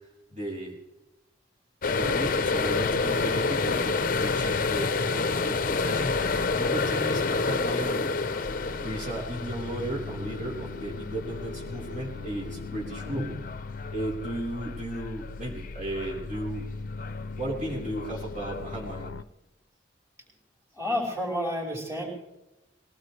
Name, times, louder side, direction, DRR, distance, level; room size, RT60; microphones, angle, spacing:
voice 1, 0.3-0.8 1.9-8.2 8.8-13.3 13.9-16.7 17.4-19.2, right 1 dB, 40° right, -4 dB, 4.3 m, -35 dB
sound 1, 1.8-16.6 16.9-17.4 17.7-19.1, left 4 dB, 45° left, 0.7 m, -29 dB
sound 2, 3.4-13.5, equal, 75° right, 3.8 m, -49 dB
sound 3, 8.4-19.2, left 3 dB, 85° left, 0.6 m, -39 dB
voice 2, 20.8-22.1, left 1 dB, 15° right, -3 dB, 5.0 m, -30 dB
21.5 x 18.5 x 3.3 m, 0.99 s
head